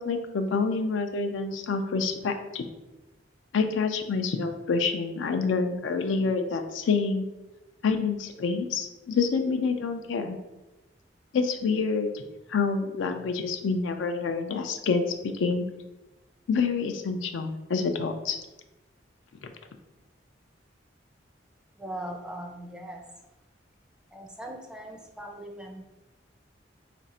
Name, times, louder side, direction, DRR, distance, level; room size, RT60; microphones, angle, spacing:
voice 1, 0.0-2.6 3.5-7.2 7.8-10.4 11.3-12.2 12.5-15.6 16.5-18.4, left 4 dB, 85° left, 6 dB, 0.4 m, -27 dB
voice 2, 21.8-23.0 24.1-25.8, right 1 dB, 5° right, 2 dB, 0.4 m, -39 dB
3.2 x 2.5 x 4.1 m, 1.0 s
head